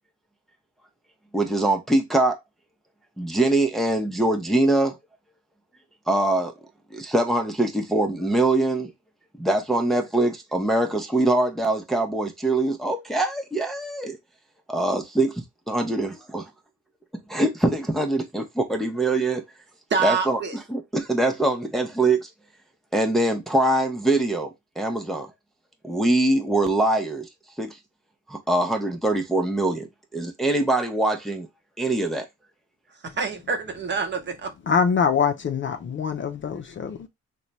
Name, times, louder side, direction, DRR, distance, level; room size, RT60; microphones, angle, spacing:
voice 1, 1.3-2.4 3.2-5.0 6.1-6.5 6.9-8.9 9.4-14.2 14.7-16.1 17.3-19.4 20.0-22.3 22.9-25.3 25.8-27.3 27.6-27.8 28.3-29.9 30.1-31.5 31.8-32.3, right 2 dB, ahead, 0.6 m, -23 dB
voice 2, 19.9-20.5 33.2-34.5, right 5 dB, 35° right, 0.9 m, -26 dB
voice 3, 34.7-37.1, left 6 dB, 40° left, 0.5 m, -24 dB
3.0 x 2.2 x 3.9 m
cardioid pair, 90°, 30 cm